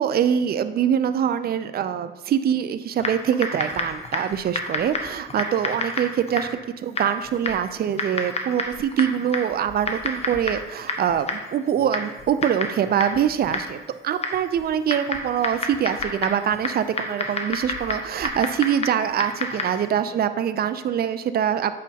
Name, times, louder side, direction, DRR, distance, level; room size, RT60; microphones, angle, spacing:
voice 1, 0.0-13.8 14.0-21.7, right 9 dB, 50° right, 11 dB, 0.4 m, -24 dB
Typing, 3.0-19.9, left 2 dB, 30° left, 0.9 m, -31 dB
8.4 x 5.0 x 2.8 m, 1.1 s
cardioid pair, 90°, 20 cm